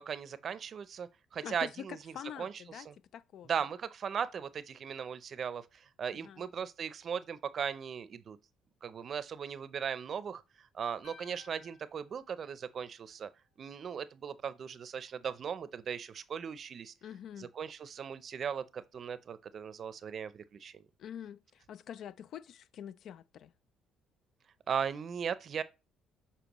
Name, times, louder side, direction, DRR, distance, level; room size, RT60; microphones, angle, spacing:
voice 1, 0.1-2.0 2.4-2.5 2.9-3.0 3.5-8.4 8.8-13.3 13.6-16.9 17.4-20.8 24.7-25.6, right 7 dB, 50° right, 0.6 m, -38 dB
voice 2, 1.4-2.9 3.1-3.5 6.1-6.4 17.0-17.5 21.0-23.5, left 9 dB, 65° left, 0.3 m, -45 dB
sound 1, 11.0-13.3, left 5 dB, 90° left, 0.8 m, -59 dB
7.0 x 4.4 x 3.0 m
supercardioid pair, 80°, 0 cm